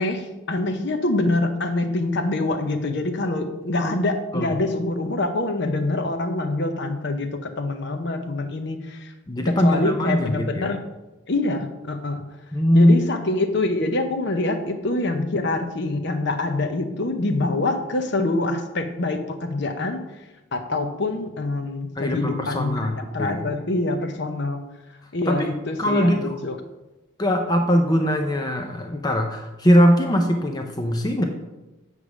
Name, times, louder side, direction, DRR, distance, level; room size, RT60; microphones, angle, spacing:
voice 1, 0.0-9.1 9.5-10.8 11.3-12.3 12.7-20.1 20.5-24.6 25.1-26.6, left 2 dB, 55° left, 6 dB, 0.8 m, -25 dB
voice 2, 9.3-10.7 12.5-13.0 22.0-23.5 25.3-25.5 25.8-26.4 27.2-31.2, equal, 20° left, 4 dB, 0.5 m, -20 dB
8.1 x 3.6 x 6.0 m, 1.0 s
head